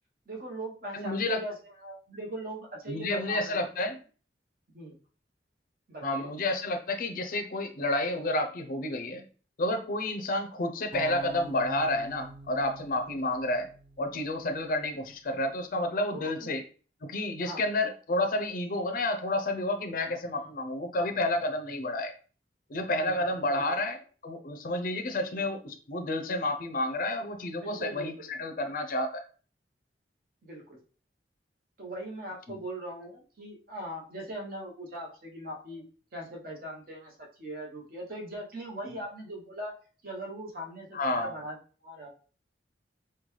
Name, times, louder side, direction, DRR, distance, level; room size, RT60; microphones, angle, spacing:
voice 1, 0.3-3.6 4.7-5.0 5.9-6.3 13.1-13.2 14.4-14.6 16.1-16.5 17.4-17.9 20.3-20.5 22.9-23.8 25.3-25.4 27.6-28.3 30.4-30.8 31.8-35.8 36.1-39.7 40.0-41.6 41.8-42.1, right 1 dB, 55° right, -1 dB, 0.9 m, -40 dB
voice 2, 0.9-1.4 2.9-4.0 6.0-9.2 9.6-13.7 14.0-16.6 17.0-22.1 22.7-29.2 32.5-32.6 38.8-39.0 40.9-41.4, left 2 dB, 50° left, 6 dB, 0.5 m, -30 dB
sound 1, 10.9-15.1, right 1 dB, 30° right, 0.5 m, -47 dB
3.7 x 2.2 x 3.1 m, 0.39 s
head